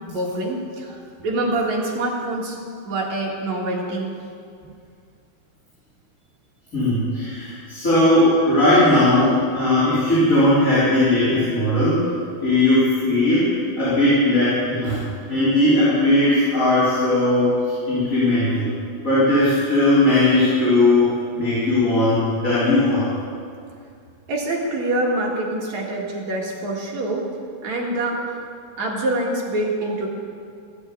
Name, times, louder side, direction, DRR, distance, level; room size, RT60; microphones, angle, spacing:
voice 1, 0.1-2.6 2.8-4.1 24.3-27.3 27.6-28.4 28.8-30.1, right 1 dB, 50° right, -2 dB, 2.8 m, -25 dB
voice 2, 6.7-12.1 12.4-13.5 13.8-15.0 15.3-17.6 17.9-18.7 19.0-23.1, left 1 dB, 20° left, -12 dB, 4.1 m, -18 dB
15.0 x 8.3 x 8.3 m, 2.3 s
omnidirectional pair, 4.5 m